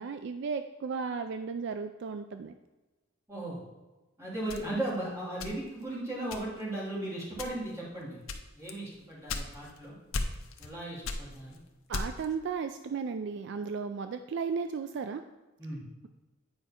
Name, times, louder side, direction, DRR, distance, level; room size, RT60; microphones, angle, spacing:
voice 1, 0.0-2.5 11.9-15.2, right 5 dB, 55° right, 8 dB, 0.3 m, -35 dB
voice 2, 3.3-3.6 4.2-8.2 8.6-9.9 10.6-11.6 15.6-15.8, right 1 dB, 15° right, -7 dB, 2.7 m, -36 dB
sound 1, 4.5-5.9 6.3-6.8 7.3-7.8 8.3-9.8 10.1-10.7 11.0-12.3, left 3 dB, 70° left, 0.7 m, -36 dB
8.8 x 5.0 x 4.3 m, 1.2 s
head